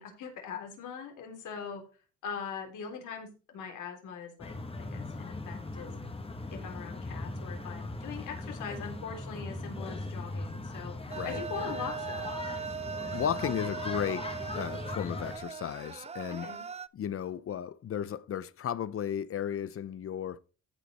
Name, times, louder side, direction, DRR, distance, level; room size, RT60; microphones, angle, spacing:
voice 1, 0.0-1.8 2.2-5.9 6.5-12.3 16.3-16.7, left 6 dB, 80° left, 3.4 m, -41 dB
sound 1, 4.4-15.4, left 2 dB, 20° left, 1.5 m, -39 dB
sound 2, 11.1-16.9, right 6 dB, 20° right, 0.4 m, -39 dB
voice 2, 13.1-14.3 14.6-16.5 16.9-20.4, left 9 dB, 50° left, 0.6 m, -34 dB
15.0 x 5.2 x 4.2 m
cardioid pair, 90°, 30 cm